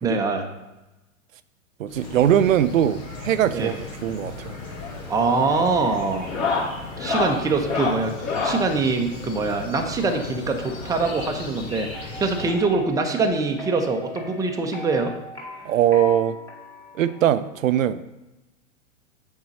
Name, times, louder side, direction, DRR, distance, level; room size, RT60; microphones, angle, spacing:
voice 1, 0.0-0.5 3.5-3.7 5.1-6.3 7.0-15.1, right 3 dB, 10° right, 3 dB, 0.7 m, -24 dB
voice 2, 1.8-4.5 15.6-16.4 16.9-18.0, right 10 dB, 80° right, 13 dB, 0.6 m, -21 dB
sound 1, 1.9-12.6, left 3 dB, 90° left, 2.6 m, -37 dB
sound 2, 4.6-5.0 5.3-5.6 6.2-8.7 10.0-11.4 12.4-12.5 12.7-12.9 13.3-13.4 14.7-14.8 16.1-16.2, left 4 dB, 40° left, 2.2 m, -28 dB
sound 3, 11.9-17.5, left 3 dB, 5° left, 1.9 m, -39 dB
7.9 x 4.5 x 5.4 m, 1.0 s
hypercardioid pair, 120°, 39 cm